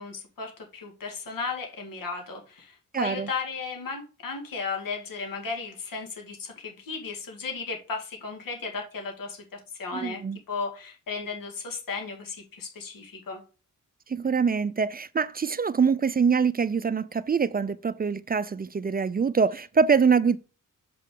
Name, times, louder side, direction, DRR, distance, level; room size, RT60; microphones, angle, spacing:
voice 1, 0.0-10.2 10.5-13.4, left 4 dB, 85° left, 2.0 m, -35 dB
voice 2, 2.9-3.3 9.9-10.4 14.1-20.4, right 5 dB, 30° right, 0.4 m, -24 dB
7.0 x 5.6 x 3.7 m
wide cardioid pair, 125°, 33 cm